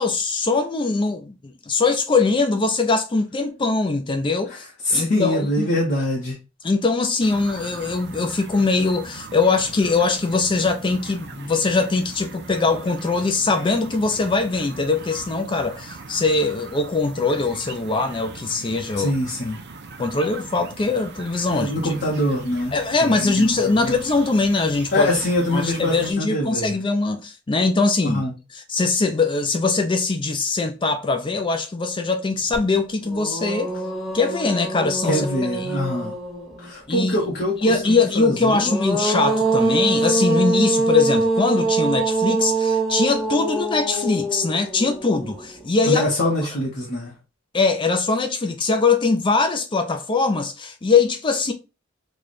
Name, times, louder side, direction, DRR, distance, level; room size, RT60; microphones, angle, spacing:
voice 1, 0.0-4.6 4.9-5.7 6.6-19.2 20.0-21.7 22.7-25.1 25.5-28.2 28.5-33.7 34.1-35.8 36.9-37.2 37.6-46.0 47.5-51.5, left 3 dB, 25° left, 0.4 m, -22 dB
voice 2, 4.5-6.4 18.9-19.6 21.5-24.0 24.9-26.8 28.0-28.3 35.0-36.2 36.6-38.7 45.9-47.2, left 1 dB, 55° left, 0.9 m, -24 dB
sound 1, 7.2-26.1, right 4 dB, 60° right, 0.5 m, -40 dB
sound 2, 32.5-32.6 33.0-36.7 38.4-45.6, right 3 dB, ahead, 0.9 m, -24 dB
3.2 x 2.3 x 3.9 m
head